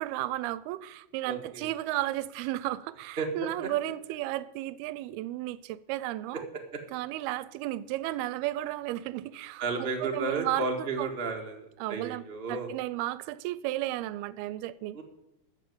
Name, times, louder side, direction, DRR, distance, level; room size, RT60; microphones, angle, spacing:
voice 1, 0.0-6.5 6.9-11.1 11.8-12.2 12.5-15.0, right 15 dB, 85° right, 2.5 m, -34 dB
voice 2, 1.3-1.7 3.2-3.3 3.6-3.7 9.6-12.7 14.9-15.0, right 4 dB, 45° right, 0.7 m, -33 dB
14.0 x 6.8 x 9.3 m
omnidirectional pair, 4.4 m